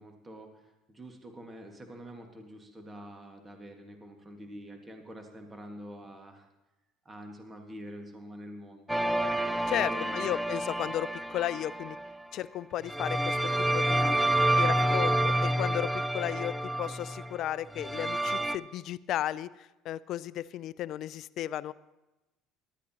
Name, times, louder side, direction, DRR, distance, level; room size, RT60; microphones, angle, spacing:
voice 1, 0.0-6.5 7.0-8.9 9.7-10.4, equal, 25° right, 3 dB, 1.8 m, -46 dB
sound 1, 8.9-12.2 12.8-18.6, right 1 dB, 5° right, 0.5 m, -28 dB
voice 2, 9.7-12.0 12.3-13.4 13.7-14.2 14.6-21.7, left 12 dB, 60° left, 19 dB, 0.4 m, -34 dB
18.5 x 12.5 x 2.9 m, 1.0 s
hypercardioid pair, 70°, 0 cm